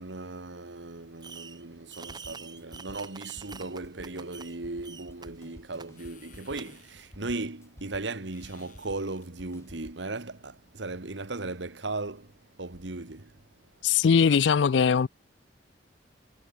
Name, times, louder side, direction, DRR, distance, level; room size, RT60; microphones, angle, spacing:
voice 1, 0.0-12.3 12.6-13.3, right 2 dB, 80° right, 1.6 m, -37 dB
Fireworks, 1.2-1.6 1.9-4.6 4.8-5.3 5.8-5.9 6.6-6.7, right 5 dB, 25° right, 1.1 m, -45 dB
sound 1, 1.9-9.9, equal, 15° left, 4.8 m, -52 dB
sound 2, 6.0-11.6, left 9 dB, 45° left, 6.7 m, -62 dB
voice 2, 13.8-15.1, left 6 dB, 80° left, 0.4 m, -21 dB
head